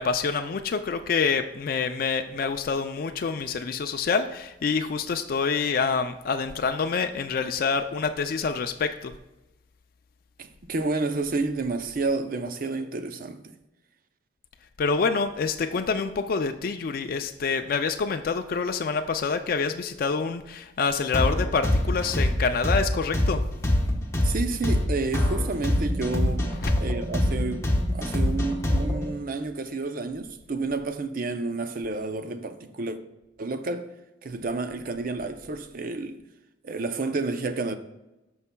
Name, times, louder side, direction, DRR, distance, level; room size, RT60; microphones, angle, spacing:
voice 1, 0.0-9.1 14.8-23.4 26.6-26.7, left 5 dB, 55° left, 0.4 m, -27 dB
voice 2, 10.4-13.5 24.2-26.4 26.8-27.6 27.9-33.0 33.4-33.9 34.2-36.2 36.6-37.8, right 3 dB, 50° right, 0.5 m, -30 dB
sound 1, 21.1-29.1, left 1 dB, 15° left, 1.0 m, -24 dB
13.5 x 5.5 x 2.2 m
head